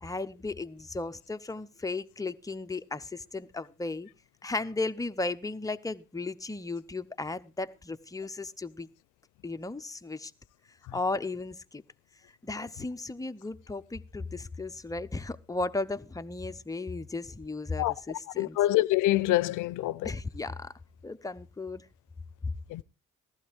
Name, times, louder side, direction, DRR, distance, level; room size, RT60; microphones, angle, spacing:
voice 1, 0.0-4.1 4.4-8.9 9.4-10.3 10.9-11.8 12.4-18.6 20.0-20.7 21.0-21.8, left 3 dB, 10° left, 0.7 m, -35 dB
voice 2, 18.4-20.1 22.7-22.8, left 16 dB, 90° left, 0.5 m, -25 dB
15.0 x 12.5 x 3.5 m
cardioid pair, 90°, 30 cm